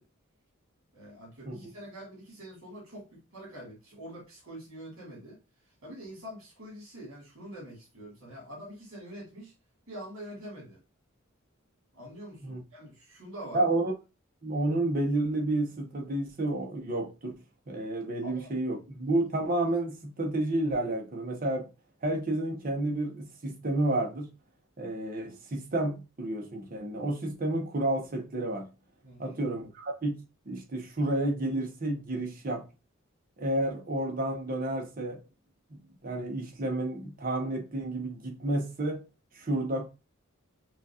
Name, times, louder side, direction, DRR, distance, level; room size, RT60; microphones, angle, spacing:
voice 1, 0.9-5.4 5.8-9.5 9.9-10.8 11.9-13.6 18.2-18.5 29.0-29.4, equal, 65° right, 1.9 m, -45 dB
voice 2, 13.5-13.9 14.4-17.3 17.7-21.7 22.0-24.3 24.8-28.7 29.2-32.7 33.4-35.2 36.0-39.0 39.3-39.9, right 1 dB, 40° right, 0.9 m, -30 dB
5.9 x 2.5 x 2.7 m
head